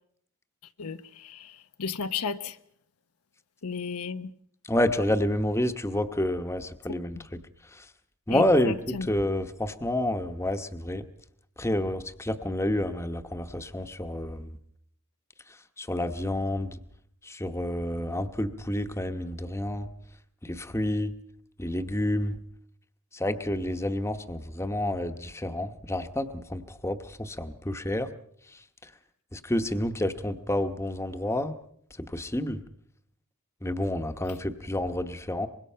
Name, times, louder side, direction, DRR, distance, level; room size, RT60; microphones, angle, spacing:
voice 1, 0.8-2.6 3.6-4.3 7.2-7.3 8.3-9.1, left 5 dB, 85° left, 0.9 m, -34 dB
voice 2, 4.7-7.4 7.7-7.9 8.3-11.0 11.6-14.6 15.5-16.8 17.2-19.9 20.4-21.1 21.6-22.4 23.1-28.1 28.5-28.9 29.3-31.6 32.0-32.6 33.6-35.5, left 1 dB, 10° left, 1.0 m, -29 dB
24.5 x 21.5 x 5.7 m
head